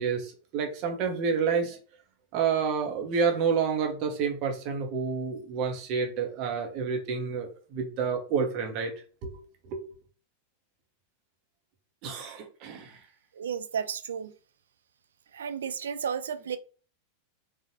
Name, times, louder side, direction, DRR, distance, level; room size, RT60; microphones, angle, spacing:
voice 1, 0.0-1.8 2.3-8.9 9.2-9.3 9.7-9.8 12.0-13.0, right 6 dB, 40° right, 0.9 m, -29 dB
voice 2, 13.4-14.3 15.3-16.6, right 7 dB, 65° right, 0.3 m, -33 dB
3.9 x 2.5 x 2.9 m
figure-of-eight pair, 90°, 0 cm